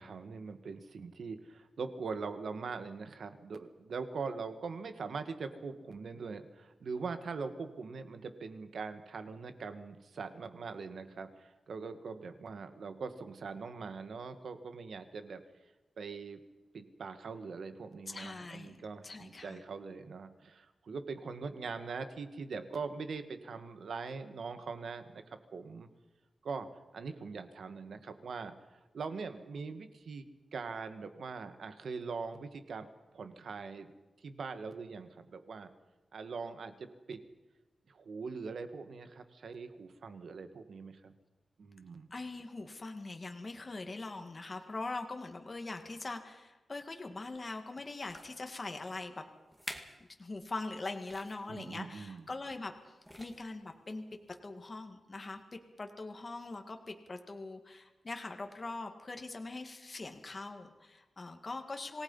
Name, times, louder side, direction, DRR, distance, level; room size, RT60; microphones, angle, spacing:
voice 1, 0.0-15.4 16.0-16.4 16.7-25.2 25.5-25.9 26.4-28.5 28.9-32.9 33.1-33.9 34.2-35.7 36.1-37.2 37.9-41.1 41.6-42.1 51.5-52.3, right 4 dB, 65° right, 9 dB, 1.8 m, -42 dB
voice 2, 18.1-19.6 42.1-49.2 50.2-52.7 53.2-54.0 54.4-62.0, left 3 dB, 30° left, 5 dB, 1.9 m, -42 dB
sound 1, 47.3-47.4 48.0-48.4 49.1-49.2 49.5-50.0 50.3-50.5 51.0-51.4 52.5-52.7 53.0-53.6 54.3-54.4, equal, ahead, 2.1 m, -48 dB
26.5 x 19.5 x 5.6 m, 1.1 s
wide cardioid pair, 165°, 0 cm